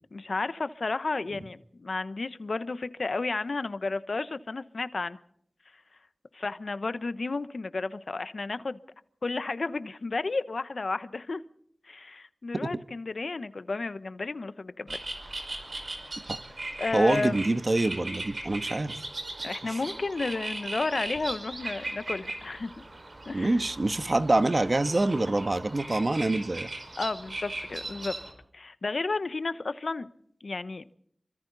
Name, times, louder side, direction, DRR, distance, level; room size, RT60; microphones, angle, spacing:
voice 1, 0.1-5.2 6.3-8.8 9.2-11.4 11.9-15.0 15.7-15.8 16.8-17.4 19.4-22.8 23.3-23.6 27.0-28.2 28.5-30.1 30.4-30.8, left 3 dB, 75° left, 13 dB, 1.0 m, -32 dB
sound 1, 14.9-28.3, right 2 dB, 65° right, 5.2 m, -38 dB
voice 2, 16.9-19.0 19.6-19.8 23.3-26.7, right 2 dB, 50° right, 10 dB, 1.3 m, -26 dB
26.5 x 24.5 x 4.1 m, 0.66 s
wide cardioid pair, 50°, 0 cm